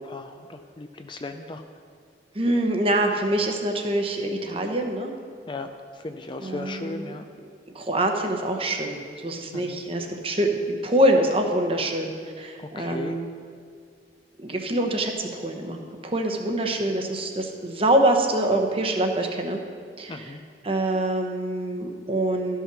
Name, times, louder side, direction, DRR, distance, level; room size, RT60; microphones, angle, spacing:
voice 1, 0.0-1.6 5.5-7.3 9.5-9.8 12.6-13.2 20.1-20.4, left 2 dB, 25° left, 7 dB, 0.4 m, -36 dB
voice 2, 2.3-5.1 6.4-7.1 7.7-12.1 12.4-13.3 14.4-15.8 16.0-19.6 20.0-20.4 20.6-22.6, right 1 dB, 30° right, 3 dB, 0.9 m, -25 dB
13.0 x 5.6 x 6.1 m, 2.2 s
head